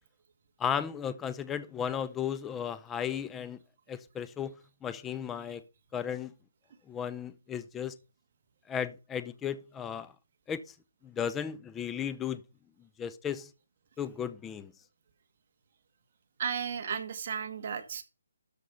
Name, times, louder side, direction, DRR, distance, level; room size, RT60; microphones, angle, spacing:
voice 1, 0.6-3.6 3.9-4.6 4.8-5.6 5.9-6.3 6.9-8.0 8.7-10.1 10.5-10.6 11.0-12.4 13.0-13.5 14.0-14.7, left 8 dB, 10° left, 0.5 m, -35 dB
voice 2, 16.4-18.0, right 7 dB, 40° right, 1.6 m, -34 dB
12.5 x 5.2 x 5.7 m
hypercardioid pair, 165°, 0 cm